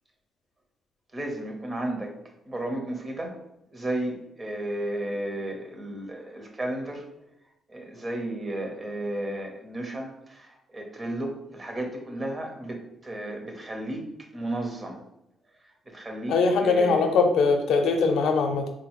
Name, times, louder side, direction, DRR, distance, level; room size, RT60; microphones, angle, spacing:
voice 1, 1.1-2.2 2.5-3.4 3.7-7.1 7.7-14.0 14.3-15.0 15.9-16.3 16.6-17.2, right 1 dB, 25° right, 2 dB, 0.9 m, -33 dB
voice 2, 16.3-18.7, left 4 dB, 80° left, 5 dB, 0.5 m, -21 dB
3.6 x 2.2 x 3.0 m, 0.87 s
cardioid pair, 90°, 0 cm